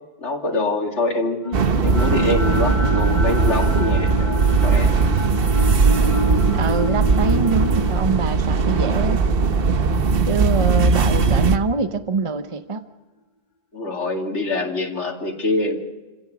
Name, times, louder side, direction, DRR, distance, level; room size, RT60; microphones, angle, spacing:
voice 1, 0.2-1.4 1.8-4.9 13.7-15.8, left 2 dB, 85° left, 1 dB, 2.8 m, -24 dB
sound 1, 1.4-11.6, left 2 dB, 40° left, 1.3 m, -30 dB
sound 2, 1.5-11.6, right 4 dB, 55° right, 1.1 m, -19 dB
voice 2, 6.5-9.2 10.3-12.9, right 4 dB, 30° right, 9 dB, 0.9 m, -24 dB
28.5 x 16.5 x 6.1 m, 1.2 s
omnidirectional pair, 1.2 m